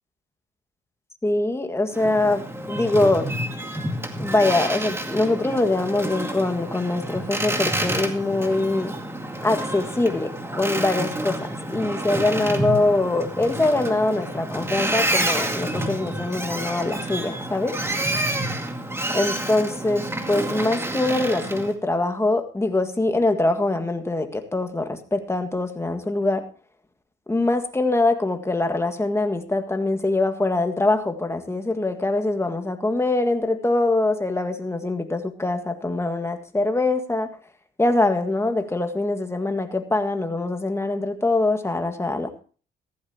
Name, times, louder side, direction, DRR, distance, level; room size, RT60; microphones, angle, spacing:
voice 1, 1.2-2.4 2.7-3.3 4.2-8.9 9.4-17.8 19.1-26.4 27.3-37.3 37.8-42.3, left 2 dB, 15° left, 6 dB, 1.8 m, -23 dB
Boat Water vehicle, 1.9-21.7, right 1 dB, 10° right, 2.2 m, -29 dB
15.0 x 14.5 x 2.9 m, 0.39 s
cardioid pair, 90°, 20 cm